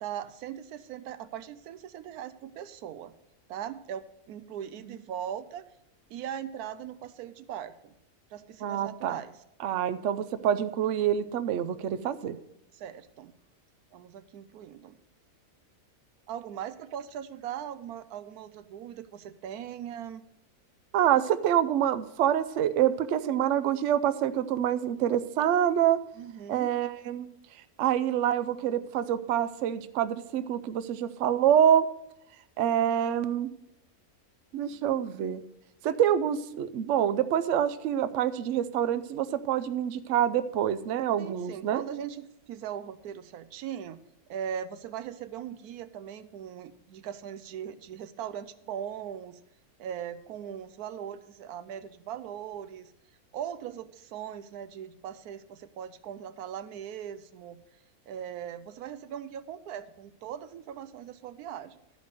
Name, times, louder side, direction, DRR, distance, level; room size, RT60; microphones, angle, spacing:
voice 1, 0.0-3.1 3.5-5.6 6.1-7.9 8.3-9.3 12.7-13.3 13.9-15.0 16.3-20.3 26.2-26.7 41.2-44.0 44.3-49.4 49.8-52.9 53.3-57.6 58.1-61.8, right 9 dB, 85° right, 13 dB, 1.1 m, -39 dB
voice 2, 8.6-9.2 9.6-12.4 20.9-26.0 26.5-27.3 27.8-31.9 32.6-33.5 34.5-35.4 35.8-41.8, right 10 dB, 65° right, 13 dB, 0.8 m, -26 dB
13.0 x 5.2 x 6.6 m, 0.84 s
omnidirectional pair, 1.6 m